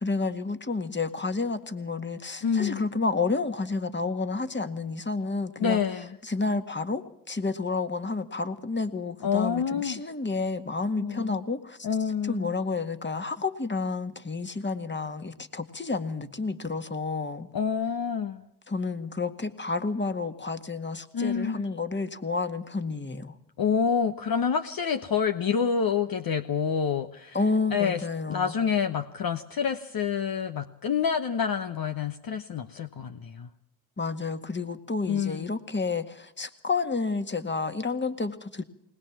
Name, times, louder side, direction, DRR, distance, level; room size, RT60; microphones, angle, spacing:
voice 1, 0.0-5.8 6.3-11.8 12.3-17.5 18.7-23.3 27.3-28.5 34.0-38.6, left 3 dB, 25° left, 9 dB, 1.9 m, -30 dB
voice 2, 2.4-2.8 5.6-6.2 9.2-10.1 11.0-11.4 11.8-12.5 17.5-18.4 21.1-21.7 23.6-27.4 27.7-33.5 35.1-35.5, left 6 dB, 55° left, 7 dB, 1.1 m, -27 dB
21.0 x 19.5 x 7.4 m, 0.76 s
hypercardioid pair, 40°, 42 cm